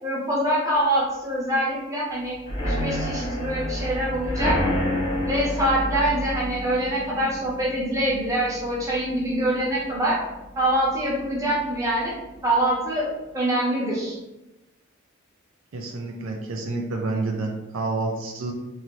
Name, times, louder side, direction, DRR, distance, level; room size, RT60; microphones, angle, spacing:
voice 1, 0.0-2.4 2.6-4.6 5.2-10.2 10.6-12.1 12.4-13.1 13.3-14.2, right 1 dB, 15° right, -5 dB, 0.8 m, -24 dB
sound 1, 2.4-10.1 10.4-10.8 11.1-11.2 11.6-11.7, left 1 dB, 25° left, 0.7 m, -29 dB
voice 2, 15.7-18.5, right 3 dB, 75° right, 1 dB, 0.4 m, -29 dB
2.7 x 2.6 x 3.0 m, 0.98 s
head